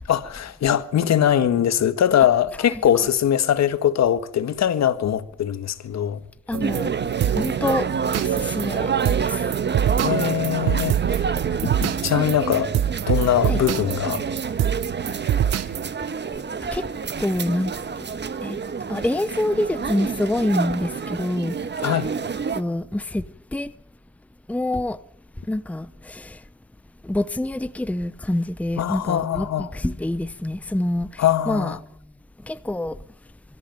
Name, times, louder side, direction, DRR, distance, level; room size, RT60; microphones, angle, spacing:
voice 1, 0.1-6.2 10.0-11.3 11.6-12.7 13.1-14.2 21.8-22.1 28.8-29.7 31.2-31.8, left 10 dB, 60° left, 1.6 m, -22 dB
voice 2, 6.5-6.9 7.3-7.9 8.2-8.9 9.2-9.5 13.5-13.6 16.7-16.8 17.2-17.7 18.4-18.6 18.9-21.5 22.5-23.2 23.5-23.7 24.5-25.0 25.5-26.4 27.0-31.7 32.5-32.9, left 1 dB, 5° left, 0.9 m, -26 dB
sound 1, 6.5-15.9, right 10 dB, 60° right, 0.8 m, -25 dB
sound 2, 6.6-22.6, right 5 dB, 35° right, 1.5 m, -29 dB
23.0 x 14.0 x 9.1 m
cardioid pair, 90°, 30 cm